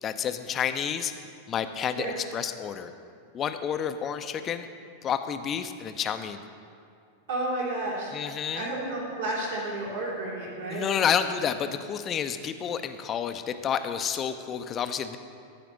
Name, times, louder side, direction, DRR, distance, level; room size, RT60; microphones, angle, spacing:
voice 1, 0.0-1.1 1.5-2.1 2.3-2.9 3.3-4.7 5.0-6.4 8.1-8.7 10.7-15.2, left 8 dB, 30° left, 8 dB, 0.5 m, -29 dB
voice 2, 7.3-8.1 8.5-10.9, right 2 dB, 60° right, -5 dB, 3.1 m, -31 dB
14.0 x 5.1 x 7.2 m, 2.3 s
figure-of-eight pair, 90°, 0 cm